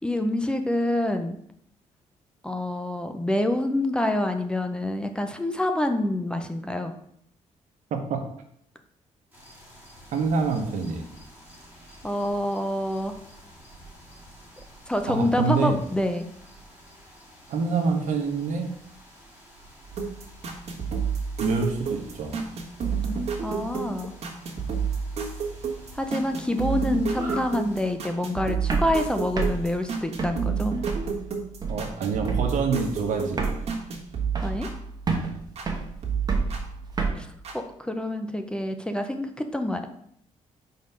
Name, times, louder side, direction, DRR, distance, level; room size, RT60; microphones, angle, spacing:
voice 1, 0.0-1.4 2.4-6.9 12.0-13.1 14.9-16.3 23.4-24.1 25.9-30.7 34.4-34.7 37.1-39.9, left 1 dB, 5° left, 7 dB, 0.5 m, -27 dB
voice 2, 7.9-8.3 10.1-11.1 15.1-15.8 17.5-18.7 21.4-22.3 31.7-33.6, right 4 dB, 80° right, 4 dB, 1.0 m, -26 dB
sound 1, 9.3-27.9, right 1 dB, 15° right, 1.9 m, -48 dB
sound 2, 19.9-35.7 36.0-37.6, right 5 dB, 55° right, 1.4 m, -31 dB
sound 3, 28.7-31.2 31.6-32.0 32.3-32.7 32.9-33.0 33.2-34.8 35.1-37.1, right 4 dB, 30° right, 1.0 m, -29 dB
4.6 x 4.1 x 5.4 m, 0.70 s
cardioid pair, 135°, 13 cm